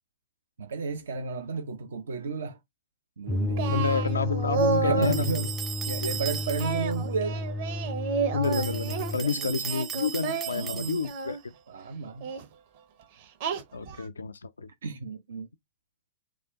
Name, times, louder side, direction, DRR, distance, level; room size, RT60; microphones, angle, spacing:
voice 1, 0.6-2.6 3.2-3.9 4.8-5.5 5.9-7.5 9.2-9.6 10.5-11.1 11.7-12.3 14.8-15.5, right 4 dB, 65° right, 0.7 m, -33 dB
sound 1, 3.3-9.2, left 1 dB, 10° left, 0.4 m, -32 dB
Singing, 3.6-5.2 6.6-9.1 9.6-11.4 12.2-12.4 13.4-14.0, right 5 dB, 50° right, 1.1 m, -31 dB
voice 2, 3.7-5.5 8.3-11.4 13.7-14.7, left 5 dB, 75° left, 0.4 m, -29 dB
sound 2, 5.0-7.0 8.4-11.3, right 9 dB, 25° right, 0.7 m, -37 dB
4.8 x 2.4 x 3.7 m
figure-of-eight pair, 100°, 0 cm